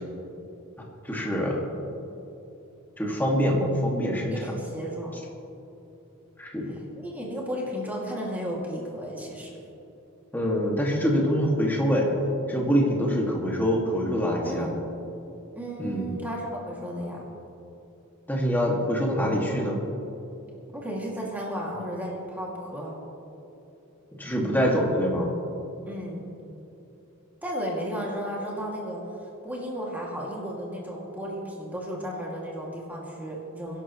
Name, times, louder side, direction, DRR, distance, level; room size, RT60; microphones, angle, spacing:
voice 1, 1.1-1.6 3.0-4.4 6.4-6.6 10.3-12.1 12.5-14.7 15.8-16.1 18.3-19.8 24.2-25.3, equal, 10° left, -2 dB, 2.1 m, -25 dB
voice 2, 4.3-5.2 6.7-9.6 14.4-14.7 15.5-17.3 20.7-23.0 25.9-26.3 27.4-33.8, equal, 10° right, -4 dB, 2.4 m, -34 dB
24.0 x 11.0 x 3.1 m, 2.9 s
head